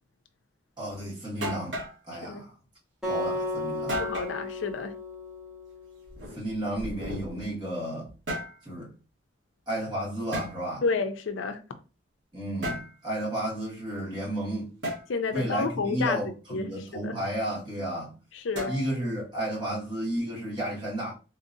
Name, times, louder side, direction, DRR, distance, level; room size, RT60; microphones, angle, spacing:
voice 1, 0.8-1.8 2.1-2.5 3.1-4.0 6.3-8.1 8.6-8.9 9.7-10.8 12.3-14.7 15.3-18.1 18.7-21.1, right 1 dB, 25° right, 1.6 m, -32 dB
sound 1, 0.9-1.0 1.4-2.0 3.9-4.4 6.0-7.5 8.0-8.6 10.3-10.5 12.6-12.9 14.8-15.1 18.5-19.1, equal, 65° right, 1.3 m, -34 dB
Acoustic guitar, 3.0-6.3, left 1 dB, 5° right, 1.2 m, -34 dB
voice 2, 4.0-4.9 10.8-11.6 15.1-17.1 18.3-18.7, left 4 dB, 80° left, 0.4 m, -30 dB
3.9 x 2.7 x 2.6 m
head